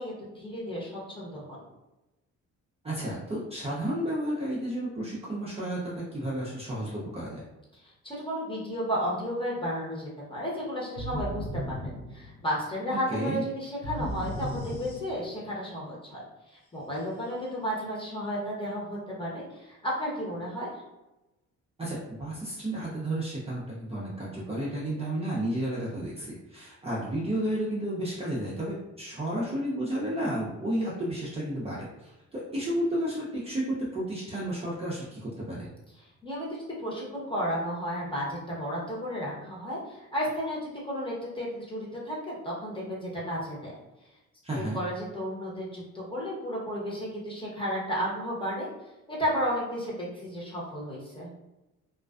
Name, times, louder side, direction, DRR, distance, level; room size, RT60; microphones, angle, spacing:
voice 1, 0.0-1.6 7.8-20.7 36.2-36.5 36.8-43.7 44.5-48.7 49.1-51.3, equal, 15° left, -6 dB, 0.9 m, -33 dB
voice 2, 2.8-7.4 12.9-13.4 21.8-33.6 33.9-35.7 44.4-44.8, right 1 dB, 20° right, -7 dB, 0.5 m, -32 dB
sound 1, 11.0-12.7 13.8-15.5, equal, 80° left, 0.7 m, -36 dB
2.4 x 2.2 x 2.3 m, 0.99 s
cardioid pair, 90°, 30 cm